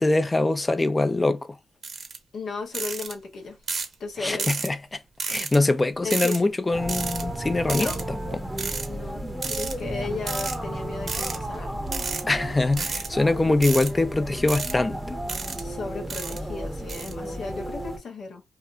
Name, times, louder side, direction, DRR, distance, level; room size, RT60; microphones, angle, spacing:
voice 1, 0.0-1.6 4.2-5.0 5.3-8.2 12.3-15.0, left 2 dB, 25° left, 0.4 m, -23 dB
sound 1, 1.8-2.2 2.7-3.1 3.7-3.9 4.4-4.7 5.2-5.6 6.1-6.4 6.9-7.2 7.7-8.0 8.6-8.9 9.4-9.7 10.3-10.6 11.1-11.4 11.9-12.2 12.7-13.1 13.6-13.9 14.5-14.7 15.3-15.6 16.1-16.4 16.9-17.1, right 5 dB, 55° right, 0.6 m, -31 dB
voice 2, 2.3-3.6 4.0-4.5 6.0-6.5 7.7-8.0 8.9-11.8 15.6-18.4, left 4 dB, 70° left, 0.8 m, -35 dB
sound 2, 6.7-18.0, right 1 dB, 5° right, 0.7 m, -33 dB
2.8 x 2.4 x 2.2 m
cardioid pair, 65°, 0 cm